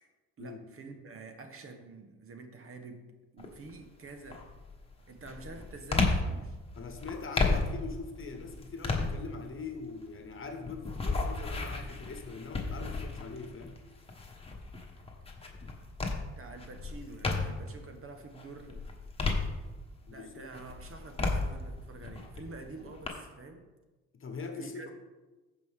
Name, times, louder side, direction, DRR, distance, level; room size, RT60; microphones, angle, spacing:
voice 1, 0.4-3.1 3.3-4.5 5.1-6.6 16.2-18.8 20.1-23.7 24.6-24.9, right 3 dB, 45° right, 6 dB, 1.2 m, -47 dB
sound 1, 3.4-3.8 4.3-17.8 18.2-20.1 20.5-23.1, left 3 dB, 20° left, 1.5 m, -34 dB
voice 2, 6.8-13.8 20.1-20.5 24.1-24.9, left 4 dB, 45° left, 6 dB, 1.2 m, -42 dB
14.5 x 5.2 x 3.6 m, 1.2 s
cardioid pair, 90°, 30 cm